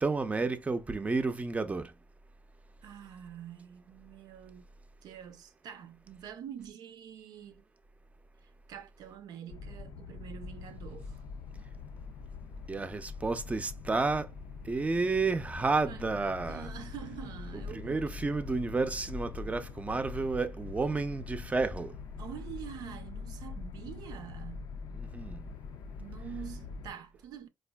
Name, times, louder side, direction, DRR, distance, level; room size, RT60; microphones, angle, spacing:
voice 1, 0.0-1.9 12.7-14.3 14.6-16.7 17.7-21.9 24.9-25.4, right 3 dB, 20° right, 0.5 m, -31 dB
voice 2, 2.8-4.7 5.0-7.6 8.7-11.2 15.9-16.1 16.5-18.0 22.2-24.7 26.0-27.5, right 9 dB, 75° right, 0.6 m, -46 dB
sound 1, 9.5-26.9, left 5 dB, 70° left, 0.4 m, -43 dB
4.3 x 2.4 x 2.3 m
cardioid pair, 90°, 7 cm